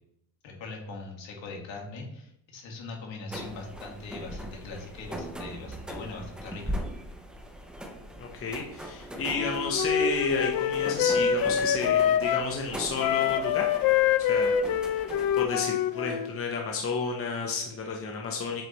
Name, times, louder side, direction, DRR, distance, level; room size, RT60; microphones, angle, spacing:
voice 1, 0.4-6.8, left 3 dB, 70° left, 0 dB, 1.9 m, -41 dB
sound 1, 3.3-15.4, equal, ahead, 0.5 m, -40 dB
voice 2, 8.2-13.7 14.3-14.6 14.9-15.0 15.3-18.6, left 4 dB, 30° left, 0 dB, 0.8 m, -31 dB
Wind instrument woodwind instrument, 9.3-12.5 13.0-16.3, left 8 dB, 50° left, 0.5 m, -25 dB
7.9 x 3.2 x 4.1 m, 0.74 s
cardioid pair, 170°, 47 cm